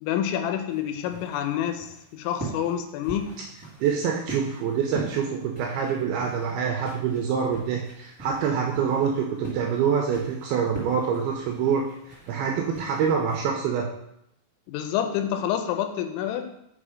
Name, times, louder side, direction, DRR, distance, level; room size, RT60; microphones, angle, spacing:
voice 1, 0.0-3.4 14.7-16.5, left 10 dB, 85° left, 7 dB, 3.1 m, -28 dB
sound 1, 0.7-13.5, right 3 dB, 15° right, 1.0 m, -42 dB
voice 2, 3.8-11.9 12.3-13.9, right 7 dB, 90° right, 1 dB, 2.2 m, -26 dB
6.5 x 5.0 x 5.0 m, 0.79 s
omnidirectional pair, 5.4 m